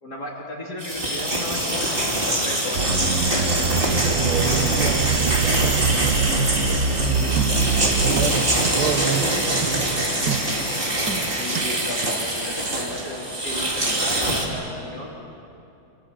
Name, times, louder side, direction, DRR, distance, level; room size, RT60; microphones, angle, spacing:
voice 1, 0.0-3.1 11.2-15.2, left 1 dB, 50° left, -4 dB, 3.4 m, -35 dB
sound 1, 0.8-14.5, right 1 dB, 25° right, 3.2 m, -24 dB
sound 2, 2.7-8.3, right 4 dB, 40° right, 1.4 m, -23 dB
voice 2, 3.9-6.8 8.0-10.1, right 7 dB, 90° right, 8 dB, 2.2 m, -29 dB
sound 3, 7.4-7.8 8.2-8.8 9.1-9.2 9.6-9.8 10.3-10.7 11.1-11.7 12.0-12.1, right 7 dB, 60° right, 1.8 m, -30 dB
27.5 x 27.5 x 7.5 m, 2.8 s
omnidirectional pair, 2.3 m